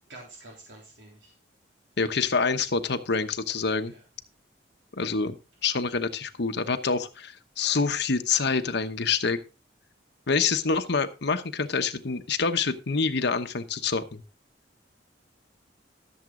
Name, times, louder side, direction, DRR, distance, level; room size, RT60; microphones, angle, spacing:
voice 1, 0.1-1.3 3.9-4.0 6.9-7.0, right 2 dB, 75° right, -2 dB, 3.5 m, -48 dB
voice 2, 2.0-3.9 5.0-5.4 5.6-9.4 10.3-14.2, left 5 dB, 65° left, 8 dB, 1.0 m, -26 dB
14.0 x 7.4 x 3.8 m, 0.29 s
head